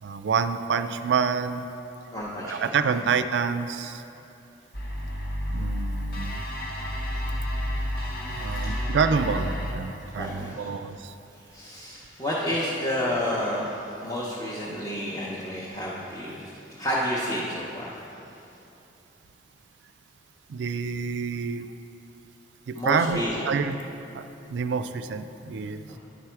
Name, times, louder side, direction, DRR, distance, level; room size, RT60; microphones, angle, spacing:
voice 1, 0.0-1.7 2.4-4.0 5.5-6.4 8.3-11.1 20.5-21.7 22.7-23.8 24.1-24.2 24.5-25.9, right 5 dB, 75° right, 10 dB, 0.3 m, -27 dB
voice 2, 2.1-2.8 8.3-8.8 10.1-10.7 11.5-18.0 22.7-23.4 25.9-26.0, equal, 20° left, -7 dB, 0.7 m, -30 dB
sound 1, 4.7-9.7, equal, 50° left, 0.9 m, -30 dB
10.0 x 4.8 x 4.4 m, 2.9 s
head